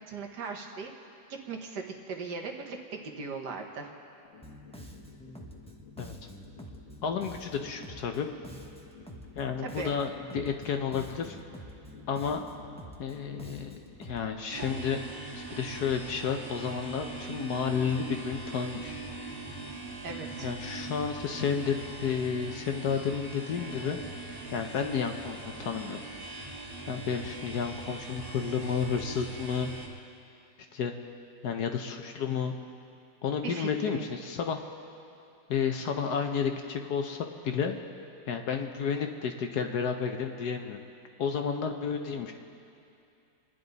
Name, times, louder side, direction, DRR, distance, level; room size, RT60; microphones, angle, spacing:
voice 1, 0.1-0.9 1.3-3.9 9.6-9.9 20.0-20.5 33.4-34.0, right 4 dB, 60° right, 3 dB, 1.7 m, -38 dB
sound 1, 4.2-14.2, left 7 dB, 90° left, 2.7 m, -53 dB
Bass guitar, 4.4-14.3, equal, 10° left, 0.4 m, -47 dB
voice 2, 7.0-8.3 9.3-11.4 12.1-12.4 13.0-15.0 15.3-19.0 20.4-24.0 24.5-26.0 26.9-29.7 30.7-30.9 31.4-32.5 33.2-34.6 35.5-37.8 38.3-40.8 41.2-42.3, left 6 dB, 65° left, 5 dB, 1.2 m, -31 dB
sound 2, 14.5-29.9, right 3 dB, 25° right, 2.5 m, -41 dB
29.0 x 10.5 x 4.0 m, 2.6 s
omnidirectional pair, 2.1 m